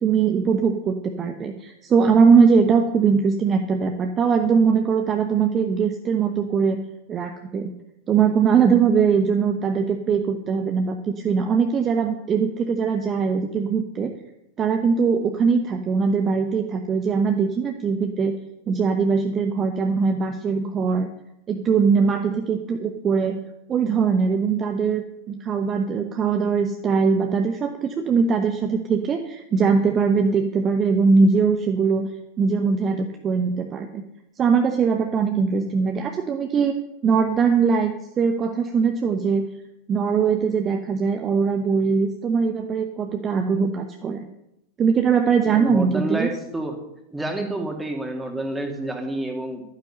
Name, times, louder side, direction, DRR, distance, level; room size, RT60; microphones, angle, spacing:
voice 1, 0.0-6.8 7.1-7.7 8.1-14.1 14.6-18.3 18.7-21.1 21.5-23.4 23.7-32.1 32.4-34.0 34.4-36.7 37.0-39.5 39.9-44.3 44.8-46.3, right 5 dB, 25° right, 5 dB, 1.0 m, -21 dB
voice 2, 45.4-46.8 47.1-49.6, right 2 dB, 5° right, 3 dB, 2.3 m, -28 dB
12.0 x 9.5 x 6.7 m, 0.85 s
figure-of-eight pair, 90°, 0 cm